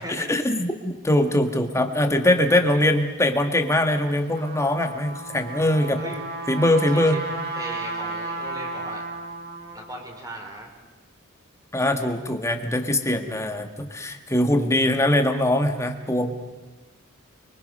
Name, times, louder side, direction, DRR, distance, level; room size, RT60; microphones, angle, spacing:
voice 1, 0.0-6.0 6.5-7.2 11.7-16.3, left 1 dB, 15° left, 5 dB, 1.8 m, -22 dB
Trumpet, 4.1-10.0, right 3 dB, 50° right, 6.8 m, -34 dB
voice 2, 5.6-6.3 6.7-7.2 7.5-9.0 9.7-10.7, right 1 dB, 15° right, 2 dB, 4.5 m, -38 dB
29.5 x 23.5 x 5.6 m, 1.2 s
head